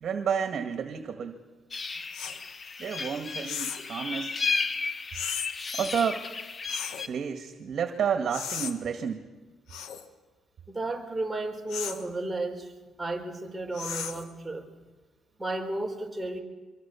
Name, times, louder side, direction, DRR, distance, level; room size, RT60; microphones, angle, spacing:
voice 1, 0.0-1.4 2.8-4.4 5.7-6.2 7.1-9.3, right 7 dB, 55° right, 6 dB, 1.8 m, -30 dB
sound 1, 1.7-7.1, left 4 dB, 35° left, 1.0 m, -33 dB
sound 2, 2.1-2.4 3.4-3.9 5.1-5.5 6.7-7.1 8.3-8.7 9.7-10.1 11.7-12.0 13.7-14.3, left 8 dB, 85° left, 1.7 m, -35 dB
voice 2, 10.7-12.7 13.0-14.6 15.4-16.4, right 2 dB, 5° right, 1 dB, 4.5 m, -33 dB
24.5 x 24.0 x 7.1 m, 1.3 s
cardioid pair, 90°, 0 cm